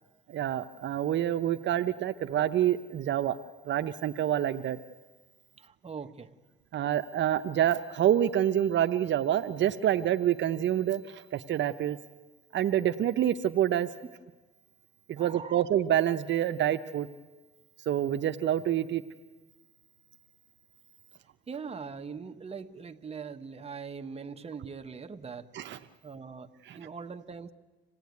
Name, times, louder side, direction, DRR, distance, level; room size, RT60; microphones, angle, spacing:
voice 1, 0.3-3.4 3.7-4.8 6.7-12.0 12.5-13.9 15.1-17.1 17.9-19.0 25.5-25.8 26.7-26.8, right 11 dB, 65° right, 9 dB, 0.8 m, -27 dB
voice 2, 5.6-6.3 15.2-15.6 21.5-25.5 26.0-27.5, right 5 dB, 30° right, 7 dB, 1.2 m, -41 dB
26.0 x 17.0 x 9.5 m, 1.3 s
cardioid pair, 90°, 20 cm